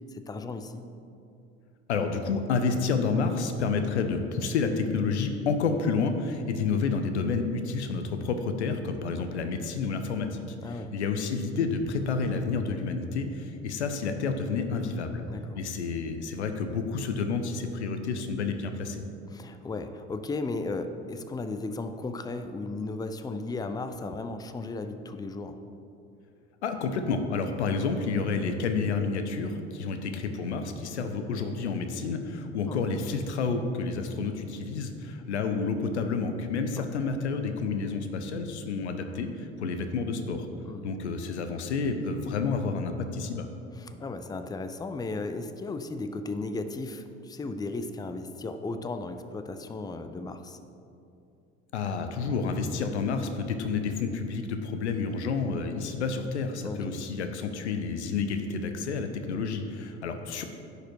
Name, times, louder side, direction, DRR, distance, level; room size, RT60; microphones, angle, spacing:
voice 1, 0.1-0.8 10.6-10.9 15.3-15.6 19.3-25.5 32.7-32.8 36.8-36.9 40.6-40.9 43.8-50.6 56.6-56.9, left 3 dB, 10° left, 9 dB, 0.5 m, -35 dB
voice 2, 1.9-15.2 15.5-19.0 26.6-40.5 40.8-43.5 51.7-60.4, left 4 dB, 85° left, 7 dB, 0.7 m, -30 dB
10.0 x 5.1 x 4.6 m, 2.6 s
hypercardioid pair, 65°, 33 cm